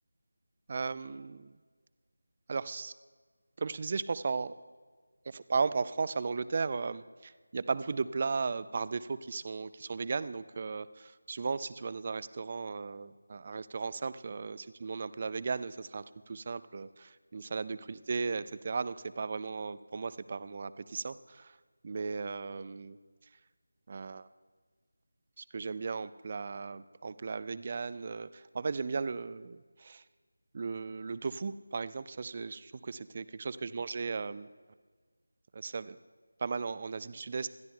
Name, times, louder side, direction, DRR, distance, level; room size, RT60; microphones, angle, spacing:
voice 1, 0.7-1.5 2.5-2.9 3.6-4.6 5.3-21.6 21.8-23.0 23.9-24.3 25.4-30.0 30.5-34.5 35.5-36.0 36.4-37.5, right 4 dB, 30° right, 16 dB, 0.4 m, -36 dB
27.0 x 13.5 x 2.3 m, 1.5 s
figure-of-eight pair, 165°, 0 cm